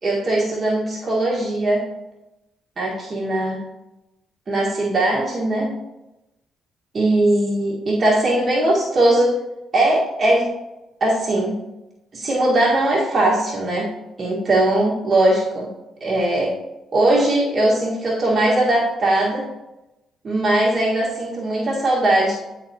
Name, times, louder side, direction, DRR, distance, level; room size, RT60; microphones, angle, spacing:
voice 1, 0.0-1.8 2.8-3.6 4.5-5.8 6.9-9.4 9.7-10.5 11.0-11.6 12.1-13.9 14.2-15.7 16.0-16.5 16.9-19.5 20.2-22.3, right 1 dB, 40° right, -4 dB, 1.5 m, -19 dB
9.8 x 4.0 x 2.8 m, 0.95 s
cardioid pair, 90°, 0 cm